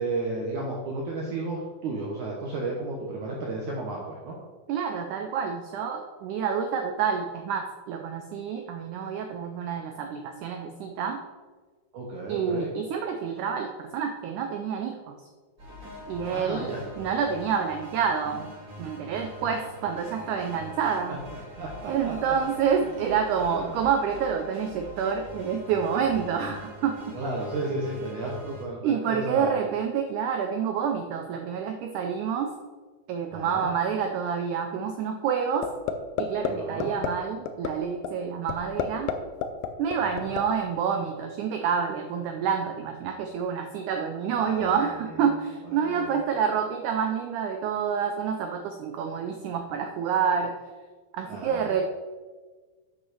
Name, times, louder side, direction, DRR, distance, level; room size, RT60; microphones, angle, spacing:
voice 1, 0.0-4.4 11.9-12.7 16.3-16.9 21.1-22.1 23.4-23.7 27.1-29.5 33.3-33.7 36.5-36.9 39.9-40.3 44.3-44.9 45.6-46.2 51.2-51.8, right 2 dB, 65° right, -3 dB, 2.3 m, -33 dB
voice 2, 4.7-11.2 12.3-15.2 16.1-18.5 18.8-21.2 21.9-27.2 28.8-32.5 33.1-35.7 36.2-39.1 39.8-50.5 51.1-51.8, right 7 dB, 85° right, 5 dB, 1.7 m, -28 dB
sound 1, 15.6-28.6, equal, 25° right, 2.0 m, -43 dB
sound 2, 35.6-35.9 36.2-36.5 36.8-37.1 37.5-37.7 38.0-38.1 38.5-39.1 39.4-40.4, left 10 dB, 75° left, 2.2 m, -27 dB
8.3 x 5.7 x 6.3 m, 1.4 s
omnidirectional pair, 4.4 m